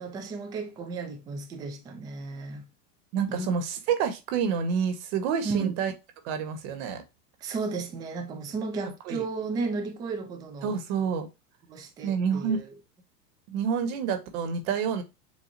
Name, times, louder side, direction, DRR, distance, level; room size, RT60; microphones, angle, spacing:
voice 1, 0.0-2.6 3.3-3.5 5.4-5.8 7.4-10.7 11.7-12.6, right 3 dB, 10° right, 0.3 m, -34 dB
voice 2, 3.1-5.9 6.2-7.0 9.1-9.2 10.6-11.3 12.0-12.6 13.5-15.0, right 7 dB, 50° right, 1.4 m, -28 dB
7.4 x 2.6 x 2.6 m
supercardioid pair, 130°, 48 cm